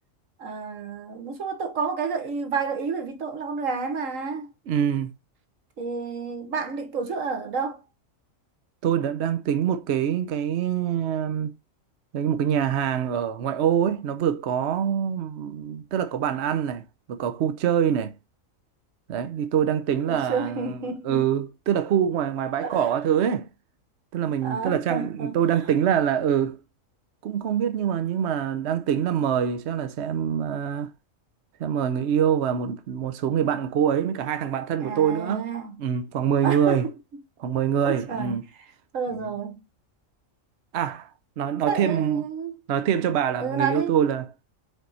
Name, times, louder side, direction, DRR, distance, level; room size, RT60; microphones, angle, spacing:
voice 1, 0.4-4.5 5.8-7.8 20.0-21.2 22.6-22.9 24.4-25.4 34.8-35.7 36.4-36.9 37.8-39.6 41.7-42.6 43.4-43.9, right 5 dB, 80° right, 1.6 m, -30 dB
voice 2, 4.7-5.1 8.8-11.5 12.1-16.8 17.1-18.1 19.1-20.8 21.0-23.5 24.1-26.6 27.2-30.9 31.6-35.5 35.8-36.8 37.4-38.4 39.2-39.3 40.7-41.1 41.4-42.3 42.7-44.3, right 9 dB, 60° right, 0.9 m, -25 dB
5.2 x 4.5 x 4.1 m
omnidirectional pair, 1.4 m